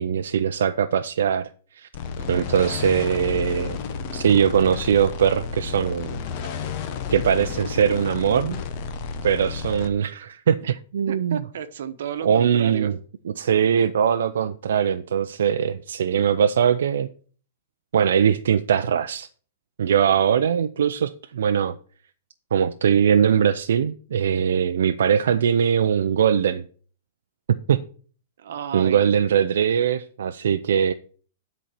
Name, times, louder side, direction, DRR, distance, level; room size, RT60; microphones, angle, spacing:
voice 1, 0.0-1.5 1.7-1.9 2.3-3.8 4.1-6.2 7.1-8.6 9.2-10.6 10.9-11.4 12.2-13.0 13.4-17.1 17.9-19.3 19.8-21.8 22.5-26.6 27.5-27.8 28.7-30.9, right 8 dB, 85° right, 0.5 m, -21 dB
sound 1, 1.9-9.9, left 6 dB, 30° left, 0.8 m, -31 dB
voice 2, 2.2-2.7 10.6-10.8 11.0-12.9 28.4-29.1, right 8 dB, 65° right, 1.1 m, -33 dB
10.5 x 4.3 x 6.6 m
supercardioid pair, 175°, 0 cm